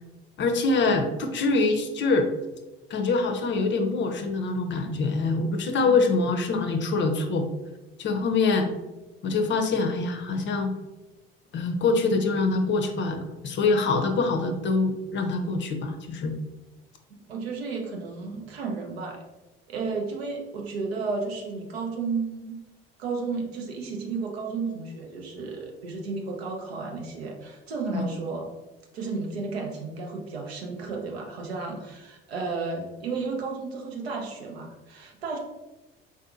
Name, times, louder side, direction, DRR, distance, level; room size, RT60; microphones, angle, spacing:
voice 1, 0.4-2.3 2.9-7.5 8.0-8.7 9.2-10.7 11.5-16.3 27.9-28.1, left 3 dB, 40° left, 5 dB, 0.5 m, -24 dB
voice 2, 17.3-19.2 19.7-22.6 23.0-28.5 28.9-35.4, right 4 dB, 85° right, 1 dB, 0.6 m, -33 dB
3.5 x 2.6 x 2.4 m, 1.1 s
hypercardioid pair, 55°, 30 cm